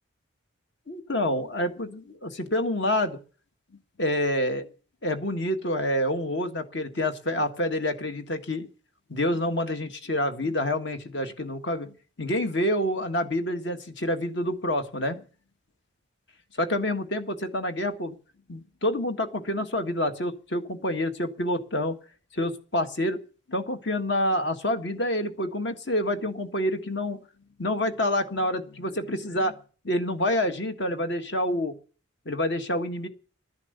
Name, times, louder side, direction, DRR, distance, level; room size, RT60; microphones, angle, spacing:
voice 1, 0.9-3.2 4.0-4.7 5.0-8.7 9.1-15.2 16.6-18.2 18.5-22.0 22.3-23.2 23.5-27.2 27.6-29.5 29.8-31.7 32.2-33.1, left 1 dB, 55° left, 7 dB, 1.8 m, -27 dB
12.5 x 10.5 x 8.1 m, 0.39 s
head